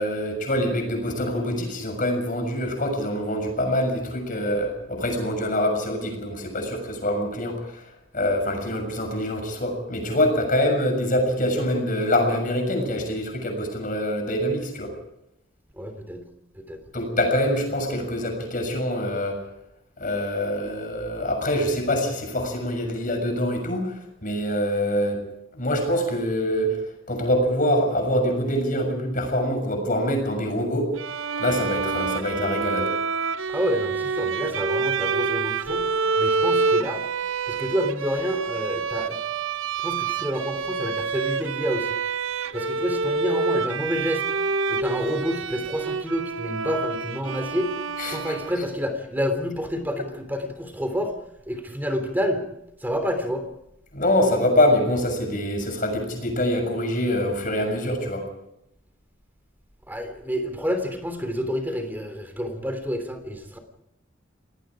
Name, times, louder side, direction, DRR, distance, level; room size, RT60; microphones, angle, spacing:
voice 1, 0.0-7.9 8.1-14.9 16.9-19.4 20.0-25.2 25.5-30.9 31.4-32.9 48.0-48.4 53.9-58.2, left 1 dB, 45° left, 5 dB, 6.7 m, -25 dB
voice 2, 15.7-16.2 16.5-16.8 33.5-35.9 36.2-37.0 37.5-39.2 39.8-41.9 42.5-44.2 44.7-47.7 48.1-51.1 51.5-52.5 52.8-53.4 59.9-63.6, equal, 10° right, 7 dB, 3.3 m, -28 dB
Bowed string instrument, 31.0-48.8, right 4 dB, 75° right, 0.8 m, -27 dB
28.0 x 19.0 x 5.0 m, 0.82 s
head